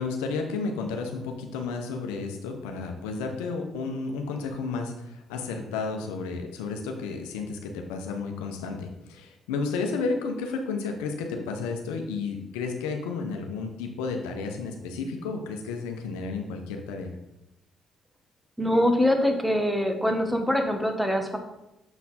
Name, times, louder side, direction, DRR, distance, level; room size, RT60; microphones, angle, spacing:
voice 1, 0.0-17.1, left 4 dB, 90° left, 4 dB, 0.7 m, -32 dB
voice 2, 18.6-21.4, left 1 dB, 5° right, 4 dB, 1.3 m, -24 dB
6.9 x 4.2 x 4.2 m, 0.91 s
hypercardioid pair, 55°, 0 cm